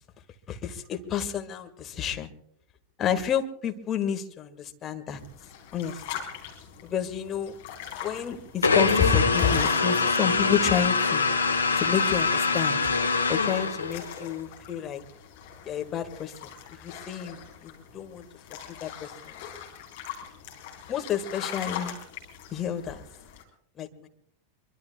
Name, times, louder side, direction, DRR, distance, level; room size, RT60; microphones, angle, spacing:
voice 1, 0.5-2.3 3.0-5.2 5.7-6.0 6.8-7.6 8.0-11.3 11.8-12.9 13.3-15.0 15.6-18.2 18.7-19.5 20.9-22.0 22.5-23.0 23.8-24.1, left 8 dB, 30° left, 6 dB, 1.8 m, -30 dB
sound 1, 5.1-23.4, left 8 dB, 55° left, 4.1 m, -42 dB
sound 2, 8.6-14.2, left 4 dB, 80° left, 1.3 m, -24 dB
24.5 x 24.0 x 2.3 m, 0.72 s
figure-of-eight pair, 90°, 0 cm